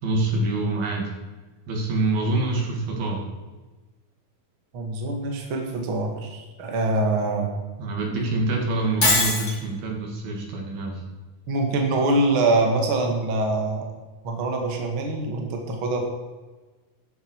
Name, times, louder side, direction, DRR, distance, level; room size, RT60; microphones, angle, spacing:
voice 1, 0.0-1.1 1.7-3.3 7.8-11.0, right 2 dB, 75° right, 1 dB, 4.3 m, -26 dB
voice 2, 4.7-7.5 11.5-13.9 14.2-16.0, right 2 dB, 40° right, 2 dB, 2.5 m, -24 dB
Shatter, 9.0-9.6, left 2 dB, 25° left, 3.6 m, -20 dB
14.5 x 11.0 x 4.8 m, 1.2 s
omnidirectional pair, 4.3 m